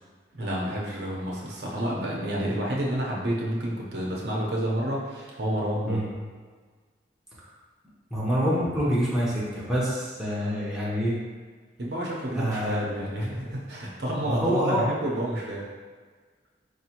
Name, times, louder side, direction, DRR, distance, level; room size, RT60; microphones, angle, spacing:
voice 1, 0.3-6.0 11.8-15.6, equal, 65° right, -4 dB, 0.7 m, -29 dB
voice 2, 8.1-11.2 12.3-12.8 14.2-14.9, equal, ahead, -9 dB, 0.8 m, -26 dB
4.9 x 2.7 x 2.9 m, 1.5 s
head